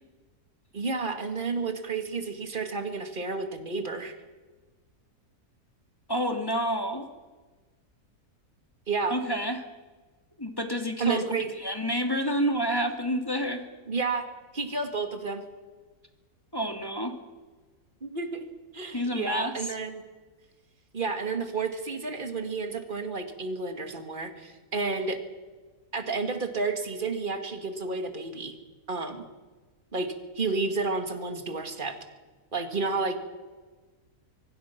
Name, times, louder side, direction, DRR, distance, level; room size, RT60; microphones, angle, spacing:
voice 1, 0.7-4.2 8.9-9.1 11.0-11.5 13.9-14.2 14.5-15.4 18.0-18.4 18.7-20.0 20.9-25.2 25.9-28.5 28.9-29.3 29.9-32.0 32.5-33.2, right 4 dB, 30° right, 6 dB, 2.3 m, -31 dB
voice 2, 6.1-7.1 9.1-9.6 10.4-11.3 11.6-13.7 16.5-17.2 18.9-19.5, equal, 15° left, 5 dB, 2.2 m, -29 dB
25.0 x 24.0 x 6.0 m, 1.3 s
omnidirectional pair, 1.7 m